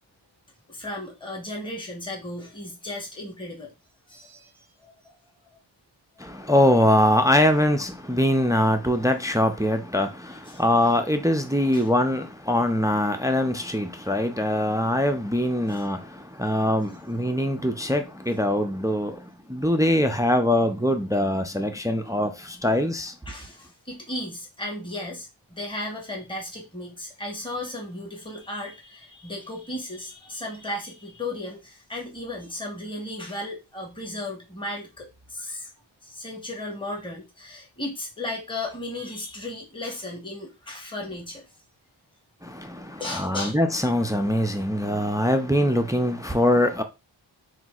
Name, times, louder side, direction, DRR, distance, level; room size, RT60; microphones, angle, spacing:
voice 1, 0.7-3.7 4.1-4.6 5.0-5.2 10.5-10.6 11.7-11.9 16.9-17.0 23.3-35.7 36.0-41.4 43.0-43.6, left 1 dB, 10° left, 1.1 m, -35 dB
voice 2, 6.2-23.1 42.4-46.8, left 1 dB, 10° right, 0.4 m, -23 dB
5.9 x 2.6 x 2.4 m
wide cardioid pair, 70°, 47 cm